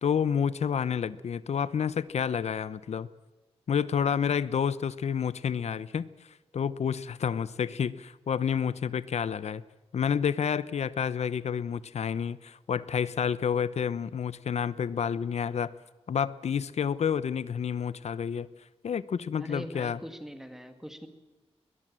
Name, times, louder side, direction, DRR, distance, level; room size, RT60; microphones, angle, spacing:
voice 1, 0.0-3.1 3.7-6.1 6.5-9.6 9.9-15.7 16.1-18.5 18.8-20.0, left 7 dB, 85° left, 17 dB, 0.8 m, -29 dB
voice 2, 19.4-21.1, equal, 5° right, 7 dB, 2.0 m, -42 dB
21.5 x 21.0 x 7.6 m, 1.2 s
wide cardioid pair, 170°, 11 cm